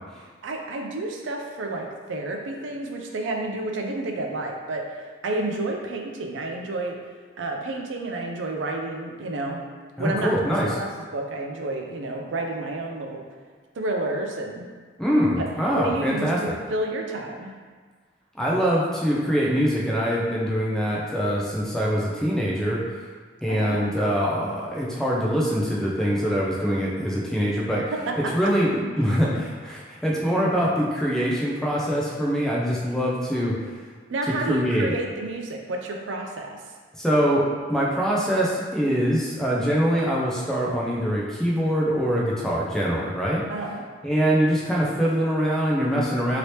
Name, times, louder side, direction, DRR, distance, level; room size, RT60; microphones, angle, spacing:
voice 1, 0.4-7.0 7.4-9.7 10.0-10.4 10.6-13.2 13.7-14.7 15.4-17.5 23.5-24.0 27.8-28.5 29.3-29.4 30.6-30.7 34.1-36.6 43.5-43.8, right 2 dB, 85° right, 2 dB, 0.4 m, -30 dB
voice 2, 10.0-10.7 15.0-16.6 18.3-22.8 23.4-27.8 28.2-33.6 34.3-34.9 36.9-43.4 44.0-46.4, equal, 5° left, -5 dB, 0.4 m, -23 dB
2.8 x 2.8 x 3.2 m, 1.5 s
head